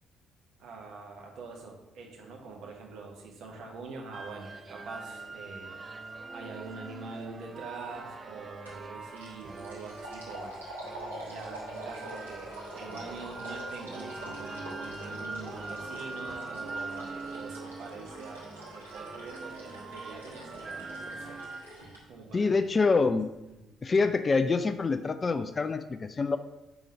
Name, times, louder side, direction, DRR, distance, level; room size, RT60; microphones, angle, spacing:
voice 1, 0.6-5.8 6.3-10.5 11.2-21.4 22.1-22.6 23.5-23.7, right 4 dB, 60° right, 1 dB, 1.0 m, -44 dB
sound 1, 4.1-21.6, right 3 dB, 35° right, 0.6 m, -42 dB
sound 2, 8.7-8.9 9.2-22.0, right 1 dB, 85° right, 1.1 m, -45 dB
voice 2, 22.3-23.3 23.8-26.4, left 4 dB, 35° left, 10 dB, 0.3 m, -26 dB
4.9 x 3.8 x 5.3 m, 0.97 s
figure-of-eight pair, 45°, 0 cm